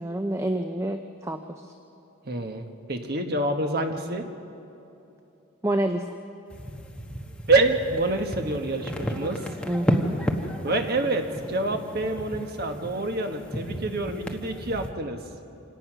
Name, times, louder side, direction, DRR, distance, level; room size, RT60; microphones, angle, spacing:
voice 1, 0.0-1.6 3.8-4.2 5.6-6.0 9.7-10.2, right 1 dB, 15° right, 6 dB, 0.6 m, -28 dB
voice 2, 2.2-4.3 7.5-9.4 10.6-15.2, right 2 dB, 50° right, 5 dB, 1.4 m, -27 dB
sound 1, 6.5-14.9, equal, 5° left, 1.2 m, -33 dB
26.5 x 18.0 x 6.1 m, 2.9 s
head